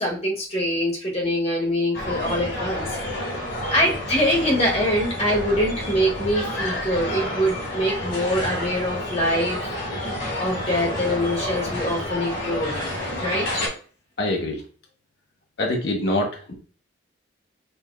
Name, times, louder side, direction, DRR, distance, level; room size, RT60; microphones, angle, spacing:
voice 1, 0.0-3.0 3.7-9.6 10.4-13.7, equal, 35° left, -3 dB, 1.5 m, -24 dB
sound 1, 1.9-13.7, left 1 dB, 90° left, 2.0 m, -29 dB
voice 2, 14.2-14.6 15.6-16.5, left 1 dB, 60° left, 0 dB, 0.8 m, -24 dB
6.7 x 2.8 x 2.3 m, 0.40 s
head